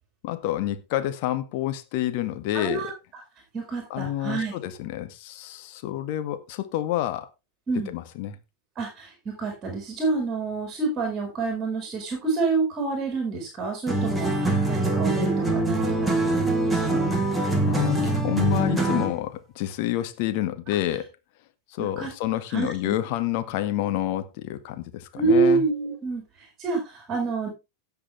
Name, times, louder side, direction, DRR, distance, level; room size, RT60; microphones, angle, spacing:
voice 1, 0.2-2.9 3.9-7.3 7.9-8.4 17.6-21.1 21.7-25.6, left 13 dB, 45° left, 1.9 m, -28 dB
voice 2, 2.5-3.2 3.5-4.5 7.7-7.9 8.8-17.0 21.8-22.1 22.5-23.0 25.1-27.5, right 4 dB, 25° right, 5.2 m, -28 dB
sound 1, 13.9-19.2, right 2 dB, 5° right, 3.0 m, -24 dB
17.0 x 6.9 x 3.4 m
figure-of-eight pair, 90°, 0 cm